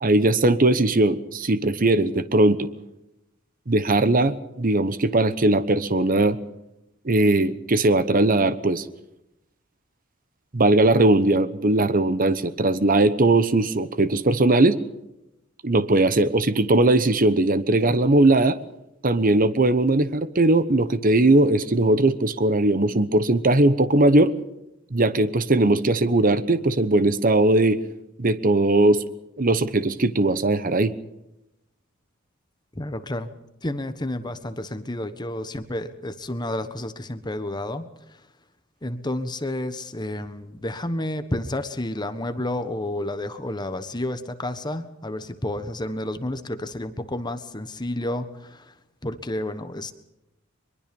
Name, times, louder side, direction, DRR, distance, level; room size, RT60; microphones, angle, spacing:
voice 1, 0.0-2.7 3.7-6.4 7.0-8.9 10.5-14.8 15.6-18.6 19.0-24.3 24.9-27.8 28.2-29.0 29.4-30.9, right 2 dB, 45° right, 13 dB, 1.0 m, -19 dB
voice 2, 32.7-33.3 33.6-38.2 38.8-48.7 49.0-49.9, left 1 dB, 20° left, 9 dB, 1.4 m, -30 dB
23.0 x 22.5 x 5.4 m, 0.89 s
head